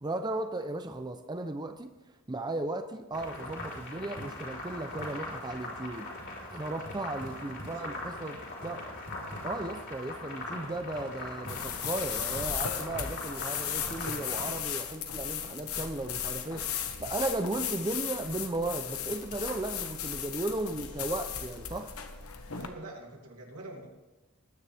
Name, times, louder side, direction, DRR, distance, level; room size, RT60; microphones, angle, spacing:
voice 1, 0.0-1.9 2.3-6.1 6.5-8.8 9.4-21.9, right 2 dB, 20° right, 6 dB, 0.6 m, -35 dB
sound 1, 3.1-14.4, left 2 dB, 55° left, 4.1 m, -41 dB
voice 2, 7.6-8.7 22.6-23.9, right 2 dB, 80° right, 0 dB, 2.9 m, -47 dB
sound 2, 11.5-22.7, left 8 dB, 75° left, 1.2 m, -36 dB
20.5 x 9.6 x 3.5 m, 1.2 s
head